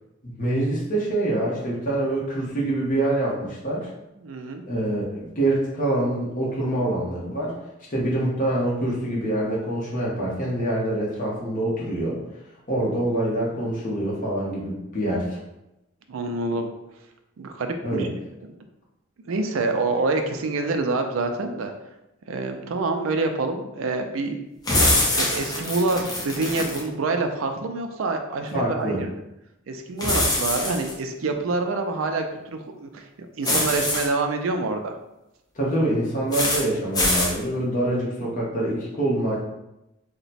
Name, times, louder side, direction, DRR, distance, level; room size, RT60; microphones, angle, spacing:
voice 1, 0.2-3.9 4.7-7.5 7.9-12.2 12.7-15.4 17.8-18.1 28.5-29.0 35.5-39.4, right 1 dB, 45° left, -4 dB, 1.0 m, -25 dB
voice 2, 4.2-4.6 16.1-16.7 17.4-18.1 19.3-21.7 22.3-24.4 25.1-29.1 29.7-35.0, right 3 dB, 85° right, 5 dB, 0.4 m, -26 dB
sound 1, 24.6-26.8 30.0-30.9 33.4-34.1 36.3-36.6 36.9-37.3, left 1 dB, 20° left, 0.6 m, -23 dB
2.9 x 2.2 x 4.1 m, 0.90 s
head